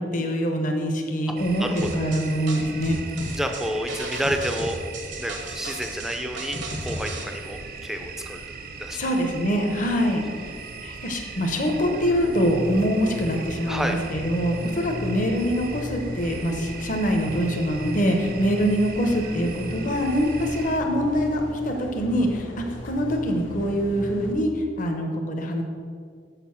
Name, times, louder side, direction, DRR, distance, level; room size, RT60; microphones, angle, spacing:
voice 1, 0.0-3.0 8.9-10.5 10.8-25.6, equal, 45° left, 2 dB, 0.9 m, -24 dB
sound 1, 1.4-20.8, right 5 dB, 50° right, 0.6 m, -39 dB
sound 2, 1.8-7.2, right 2 dB, 65° right, 1.3 m, -34 dB
voice 2, 3.3-4.8 5.2-8.4 8.8-9.0 13.6-14.0, equal, ahead, 4 dB, 0.6 m, -29 dB
sound 3, 12.0-24.3, equal, 80° left, 1.1 m, -36 dB
6.8 x 6.7 x 5.8 m, 2.1 s
head